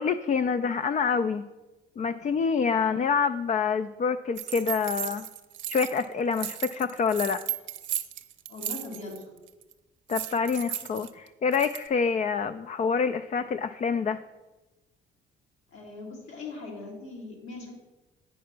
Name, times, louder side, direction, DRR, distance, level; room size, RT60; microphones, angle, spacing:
voice 1, 0.0-1.4 2.0-5.3 5.7-7.4 10.1-14.2, left 5 dB, 40° left, 10 dB, 0.4 m, -27 dB
sound 1, 4.4-6.1 6.3-9.2 9.5-9.7 10.1-11.9, right 11 dB, 70° right, 0.6 m, -35 dB
voice 2, 8.5-9.2 15.7-17.7, left 3 dB, 85° left, -2 dB, 2.6 m, -40 dB
8.3 x 5.5 x 5.9 m, 1.1 s
cardioid pair, 90°, 20 cm